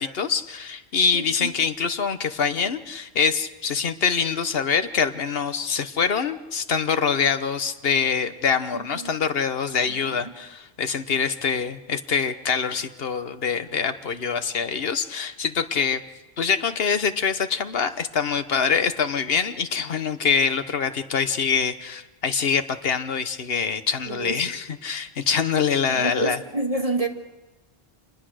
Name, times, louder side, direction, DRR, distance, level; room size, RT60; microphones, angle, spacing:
voice 1, 0.0-16.0 16.4-26.4, left 6 dB, 70° left, 10 dB, 1.3 m, -24 dB
voice 2, 1.1-1.5 8.7-9.1 9.8-10.4 24.1-24.4 25.9-27.1, right 2 dB, 35° right, 4 dB, 1.8 m, -29 dB
27.0 x 20.5 x 6.4 m, 1.1 s
omnidirectional pair, 1.0 m